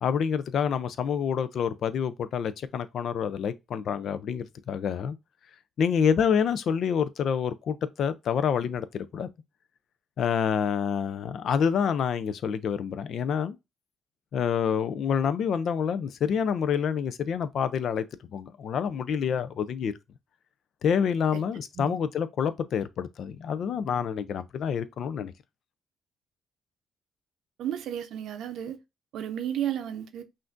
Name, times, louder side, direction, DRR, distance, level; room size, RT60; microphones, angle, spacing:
voice 1, 0.0-5.2 5.8-9.3 10.2-13.6 14.3-18.0 18.3-19.9 20.8-25.3, left 7 dB, 65° left, 0.4 m, -27 dB
voice 2, 27.6-28.8 29.1-30.2, right 10 dB, 80° right, 0.6 m, -33 dB
5.7 x 2.5 x 2.5 m
cardioid pair, 90°, 0 cm